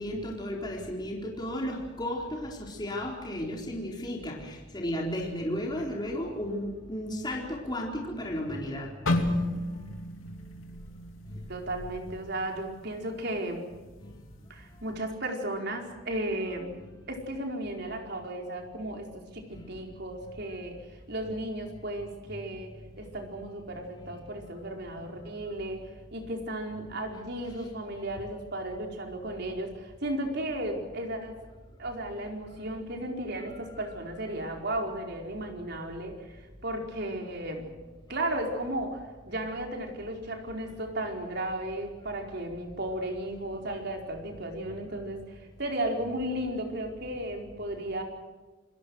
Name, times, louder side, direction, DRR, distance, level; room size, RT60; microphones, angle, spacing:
voice 1, 0.0-8.9 14.0-14.1 19.5-19.7, equal, 20° left, -1 dB, 4.1 m, -34 dB
sound 1, 9.1-13.1 13.4-13.7 14.4-14.7, left 1 dB, 80° left, 2.7 m, -32 dB
voice 2, 11.5-13.7 14.5-16.7 17.1-20.8 21.1-31.4 31.8-37.7 38.1-48.0, right 1 dB, 55° right, 3 dB, 4.7 m, -35 dB
28.5 x 22.0 x 6.4 m, 1.3 s
head